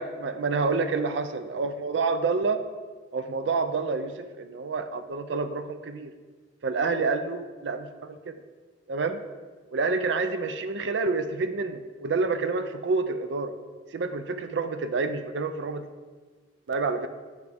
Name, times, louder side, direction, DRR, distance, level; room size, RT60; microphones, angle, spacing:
voice 1, 0.0-2.6 3.1-6.1 6.6-8.2 8.9-9.2 9.7-13.5 13.9-15.8 16.7-17.1, right 4 dB, 75° right, 9 dB, 0.4 m, -28 dB
10.5 x 4.7 x 3.4 m, 1.4 s
head